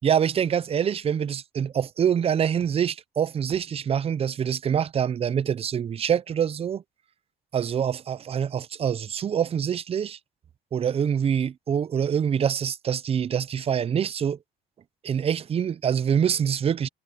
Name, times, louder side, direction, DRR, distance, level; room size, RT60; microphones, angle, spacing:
voice 1, 0.0-6.8 7.5-10.2 10.7-14.4 15.0-16.9, right 8 dB, 35° right, 0.6 m, -25 dB
cardioid pair, 110°, 17 cm